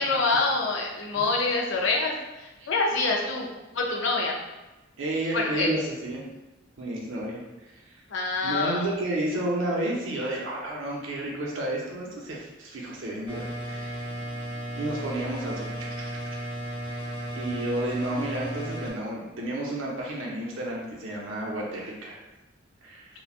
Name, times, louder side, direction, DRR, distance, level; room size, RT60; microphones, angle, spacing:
voice 1, 0.0-3.5 3.7-4.4 5.3-5.7 8.1-8.9, left 3 dB, 70° left, -1 dB, 0.5 m, -26 dB
voice 2, 5.0-6.2 6.8-7.4 8.4-14.0 14.7-16.1 16.9-17.0 17.3-22.2 22.8-23.1, right 1 dB, 80° right, -2 dB, 0.7 m, -31 dB
sound 1, 13.3-18.9, right 1 dB, 20° right, 0.6 m, -34 dB
3.0 x 2.2 x 2.4 m, 1.1 s
head